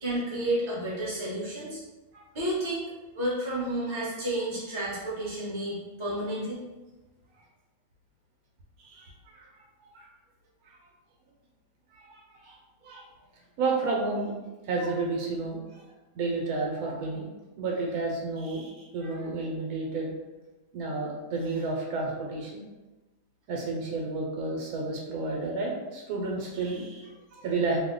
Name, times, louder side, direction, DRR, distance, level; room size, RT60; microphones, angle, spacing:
voice 1, 0.0-1.8 2.3-2.8 3.1-6.6, right 1 dB, 20° right, -8 dB, 1.0 m, -31 dB
voice 2, 8.8-9.5 9.9-10.1 10.7-10.8 11.9-12.6 12.8-13.0 13.6-14.3 14.7-15.6 16.1-17.3 17.6-20.1 20.7-22.6 23.5-27.8, right 3 dB, 85° right, -1 dB, 1.1 m, -31 dB
2.7 x 2.1 x 3.6 m, 1.1 s
omnidirectional pair, 1.6 m